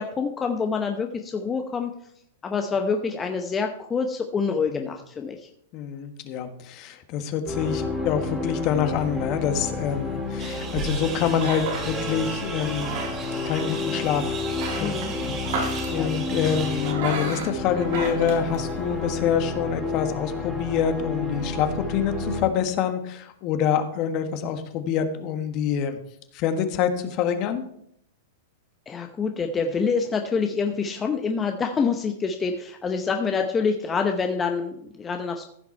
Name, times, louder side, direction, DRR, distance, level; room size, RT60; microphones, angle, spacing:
voice 1, 0.0-1.9 2.4-5.5 14.8-15.1 15.9-16.1 28.9-35.4, left 5 dB, 20° left, 5 dB, 0.9 m, -26 dB
voice 2, 5.7-12.9 13.4-14.4 14.7-26.0 26.3-27.6, left 8 dB, 45° left, 8 dB, 1.4 m, -26 dB
sound 1, 7.5-22.4, left 3 dB, ahead, 2.6 m, -31 dB
sound 2, 8.9-19.2, right 3 dB, 60° right, 4.6 m, -35 dB
sound 3, 10.4-16.9, right 5 dB, 30° right, 2.5 m, -37 dB
15.0 x 6.0 x 4.4 m, 0.71 s
hypercardioid pair, 120°, 0 cm